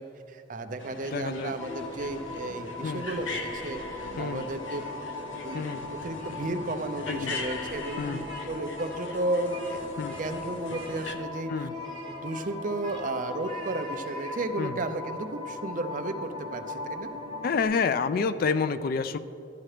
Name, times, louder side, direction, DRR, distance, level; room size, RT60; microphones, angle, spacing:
voice 1, 0.0-3.8 4.2-4.8 5.4-9.8 10.2-11.5 12.0-17.1, right 2 dB, 45° right, 7 dB, 0.5 m, -33 dB
sound 1, 0.8-11.2, left 3 dB, 90° left, 0.8 m, -41 dB
voice 2, 1.1-1.6 2.8-3.1 4.2-4.4 5.5-5.9 7.1-7.4 8.0-8.2 10.0-10.2 11.5-11.8 14.6-14.8 17.4-19.2, left 5 dB, 50° left, 13 dB, 0.3 m, -28 dB
sound 2, 1.6-17.6, left 3 dB, 30° left, 1.3 m, -39 dB
Speech, 4.7-5.7 5.9-6.3 7.1-8.5 8.7-9.8 10.1-10.3 10.7-11.3 11.7-14.4, right 4 dB, 25° right, 1.2 m, -47 dB
12.5 x 8.7 x 3.3 m, 2.9 s
head